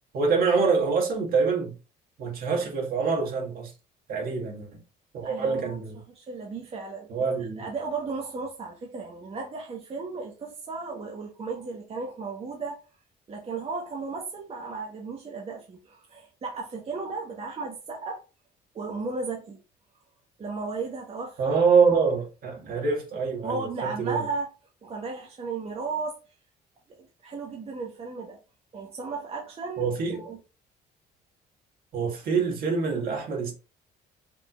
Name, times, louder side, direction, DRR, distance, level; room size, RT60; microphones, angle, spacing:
voice 1, 0.1-1.8 2.2-3.7 4.1-4.8 5.1-6.0 7.1-7.6 21.4-24.2 29.8-30.2 31.9-33.5, right 5 dB, 60° right, 2.0 m, -25 dB
voice 2, 5.2-5.8 6.1-7.1 7.4-12.8 13.3-18.3 18.7-19.6 20.4-21.6 23.4-24.5 24.8-26.2 27.2-28.4 28.7-30.4, right 4 dB, 35° right, 1.3 m, -35 dB
5.3 x 3.8 x 2.5 m
cardioid pair, 110°, 17 cm